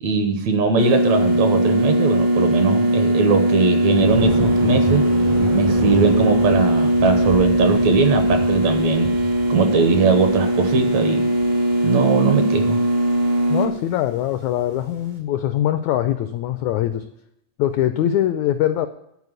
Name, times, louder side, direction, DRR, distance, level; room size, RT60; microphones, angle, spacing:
voice 1, 0.0-5.1 5.5-9.1 9.5-11.3 11.8-12.8, right 5 dB, 70° right, 7 dB, 2.0 m, -20 dB
sound 1, 0.8-13.7, right 1 dB, 55° right, 0.6 m, -19 dB
Thunder, 3.9-15.0, right 2 dB, 85° right, 4.0 m, -31 dB
voice 2, 13.5-17.0 17.6-18.9, left 12 dB, 85° left, 10 dB, 1.6 m, -22 dB
11.5 x 4.7 x 8.0 m, 0.77 s
omnidirectional pair, 3.8 m